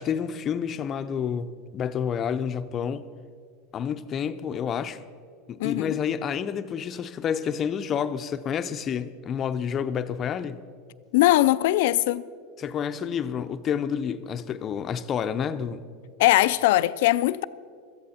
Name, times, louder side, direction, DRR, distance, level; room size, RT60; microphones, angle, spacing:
voice 1, 0.0-3.1 3.7-5.0 5.5-10.6 12.6-15.8, left 7 dB, 35° left, 0.6 m, -29 dB
voice 2, 5.6-6.0 11.1-12.2 16.2-17.4, left 16 dB, 70° left, 0.4 m, -20 dB
16.5 x 13.5 x 4.3 m
supercardioid pair, 120°, 0 cm